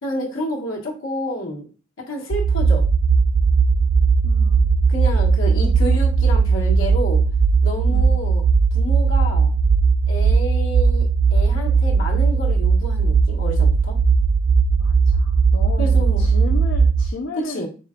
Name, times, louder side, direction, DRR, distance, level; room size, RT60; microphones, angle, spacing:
voice 1, 0.0-1.6 2.0-2.8 4.9-7.2 7.6-8.4 8.7-9.5 10.1-11.1 11.3-14.0 15.8-16.2 17.4-17.7, equal, 80° left, 0 dB, 1.2 m, -29 dB
sound 1, 2.3-17.1, right 5 dB, 65° right, 0.3 m, -17 dB
voice 2, 4.2-4.7 5.5-5.7 7.9-8.2 14.8-17.7, left 3 dB, 60° left, -1 dB, 0.6 m, -34 dB
4.8 x 2.3 x 3.6 m, 0.36 s
head